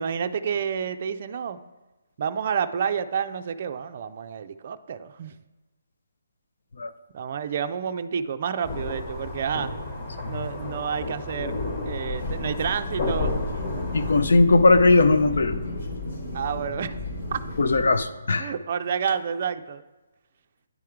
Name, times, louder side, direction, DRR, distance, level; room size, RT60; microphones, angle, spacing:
voice 1, 0.0-1.6 2.2-5.3 7.1-9.7 10.2-11.5 11.8-13.4 16.3-17.0 17.3-17.4 18.4-19.8, right 7 dB, 40° right, 8 dB, 0.4 m, -29 dB
sound 1, 8.6-14.2, left 2 dB, 35° left, 1.2 m, -32 dB
sound 2, 12.2-18.0, left 2 dB, 55° left, 1.5 m, -32 dB
voice 2, 13.9-15.5 17.6-18.5, left 3 dB, 70° left, 11 dB, 0.6 m, -19 dB
9.5 x 3.6 x 4.5 m, 1.1 s
hypercardioid pair, 165°, 0 cm